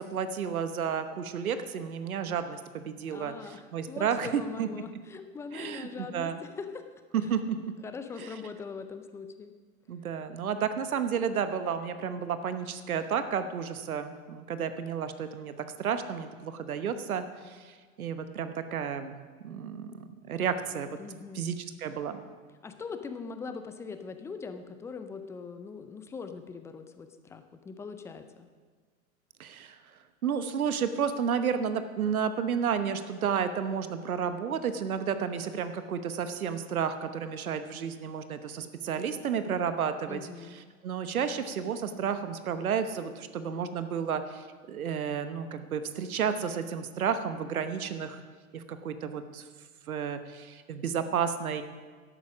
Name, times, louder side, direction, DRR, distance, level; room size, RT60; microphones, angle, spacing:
voice 1, 0.0-4.7 5.5-6.4 7.1-7.6 8.2-8.3 9.9-15.5 15.8-19.2 19.4-20.9 21.3-22.2 29.4-29.8 30.2-40.2 40.8-48.2 48.5-49.4 49.9-51.6, right 7 dB, 85° right, 10 dB, 1.1 m, -32 dB
voice 2, 3.1-6.8 7.8-9.5 21.0-21.5 22.6-28.5 40.1-40.6, left 5 dB, 5° left, 9 dB, 0.4 m, -41 dB
11.5 x 8.9 x 6.1 m, 1.5 s
hypercardioid pair, 110°, 42 cm